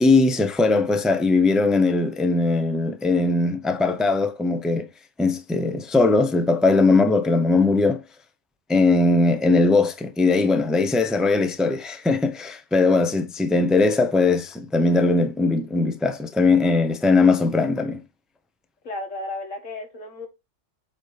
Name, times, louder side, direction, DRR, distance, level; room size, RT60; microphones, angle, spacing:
voice 1, 0.0-4.9 5.2-8.0 8.7-18.0, left 3 dB, ahead, 0.6 m, -20 dB
voice 2, 18.8-20.3, left 2 dB, 85° left, 2.2 m, -33 dB
8.1 x 3.1 x 4.7 m
omnidirectional pair, 1.3 m